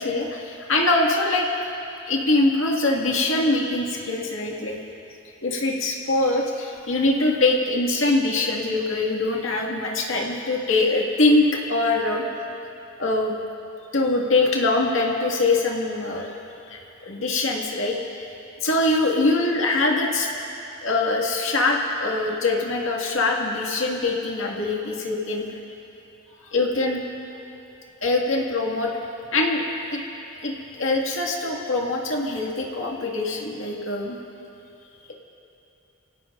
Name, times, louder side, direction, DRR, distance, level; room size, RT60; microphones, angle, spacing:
voice 1, 0.0-1.5 2.1-4.8 5.4-12.2 13.0-13.4 13.9-16.3 16.7-16.8 17.1-18.0 18.6-20.3 20.8-25.5 26.5-27.0 28.0-28.9 29.3-29.6 29.9-30.0 30.4-34.2, left 2 dB, 65° left, -1 dB, 2.1 m, -23 dB
28.0 x 17.0 x 2.6 m, 2.8 s
head